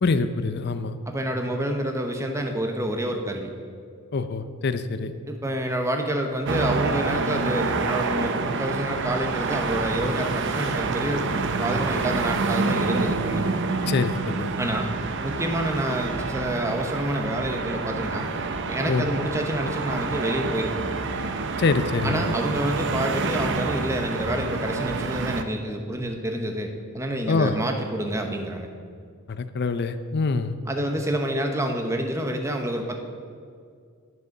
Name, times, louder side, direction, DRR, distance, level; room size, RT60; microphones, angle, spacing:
voice 1, 0.0-1.0 4.1-5.1 13.9-14.5 18.9-19.1 21.6-22.3 27.3-27.5 29.3-30.6, left 4 dB, 45° left, 10 dB, 0.5 m, -25 dB
voice 2, 1.1-3.5 5.3-13.4 14.6-14.9 15.2-18.3 18.6-21.0 22.0-28.7 30.7-33.0, right 1 dB, 15° right, 4 dB, 0.9 m, -28 dB
sound 1, 6.5-25.4, right 4 dB, 55° right, 0.6 m, -27 dB
10.5 x 6.8 x 6.5 m, 2.2 s
head